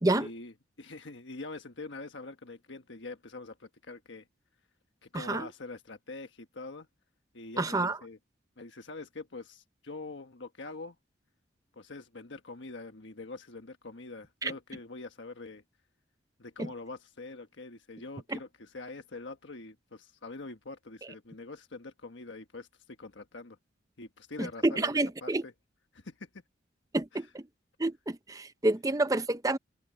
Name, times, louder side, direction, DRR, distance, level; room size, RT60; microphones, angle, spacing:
voice 1, 0.0-4.2 5.0-6.9 7.3-8.2 8.6-11.0 11.7-15.6 16.4-23.6 24.0-24.9 25.2-25.5 25.9-26.4 27.1-27.2, left 3 dB, 70° left, 1.3 m, -44 dB
voice 2, 5.1-5.5 7.6-8.0 14.4-14.5 16.6-16.7 18.3-18.4 24.4-25.4 26.9-27.4 27.8-29.6, right 2 dB, 20° right, 0.6 m, -29 dB
head